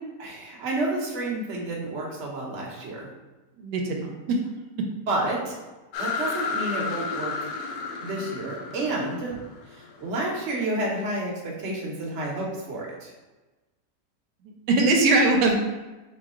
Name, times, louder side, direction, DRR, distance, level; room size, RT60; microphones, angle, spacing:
voice 1, 0.2-3.1 5.1-5.6 6.0-7.3 8.0-9.4 10.0-13.1, right 2 dB, 50° right, -3 dB, 1.1 m, -30 dB
voice 2, 3.6-4.4 14.4-15.5, right 2 dB, 85° right, 2 dB, 1.3 m, -21 dB
sound 1, 5.9-10.5, left 4 dB, 85° left, 1.2 m, -32 dB
4.3 x 3.0 x 3.6 m, 1.2 s
omnidirectional pair, 1.8 m